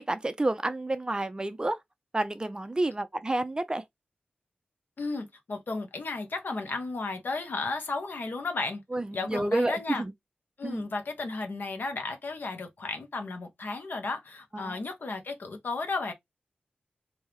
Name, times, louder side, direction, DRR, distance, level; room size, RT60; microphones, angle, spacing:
voice 1, 0.0-1.8 2.1-3.8 8.9-10.1 10.6-10.9 14.5-14.8, right 2 dB, 25° right, 0.4 m, -29 dB
voice 2, 5.0-8.8 9.1-10.0 10.6-16.1, left 3 dB, 65° left, 1.0 m, -34 dB
3.4 x 2.7 x 2.8 m
wide cardioid pair, 85°, 3 cm